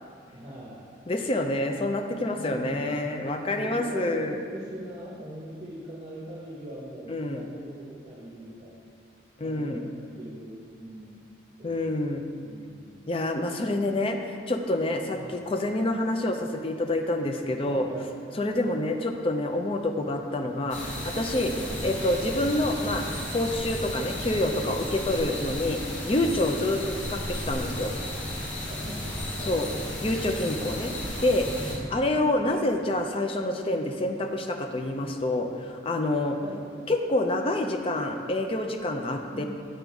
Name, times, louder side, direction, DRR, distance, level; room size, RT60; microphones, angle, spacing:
voice 1, 0.3-0.9 2.3-3.1 3.4-8.9 9.4-11.2 11.6-13.1 15.1-15.5 17.6-18.1 18.6-18.9 19.9-20.2 21.6-21.8 26.7-26.9 28.7-29.9 31.5-32.1 36.2-36.6 39.3-39.5, right 1 dB, 30° right, -4 dB, 0.9 m, -41 dB
voice 2, 1.1-4.4 7.1-7.5 9.4-9.8 11.6-12.3 13.1-14.2 14.5-17.9 18.4-21.5 21.8-23.1 23.3-26.8 27.3-27.9 29.5-29.7 30.0-30.9 31.2-31.5 31.9-36.4 36.9-39.4, left 1 dB, 30° left, 5 dB, 0.4 m, -27 dB
sound 1, 20.7-31.7, left 1 dB, 85° left, 1.7 m, -34 dB
7.9 x 3.9 x 4.6 m, 2.2 s
head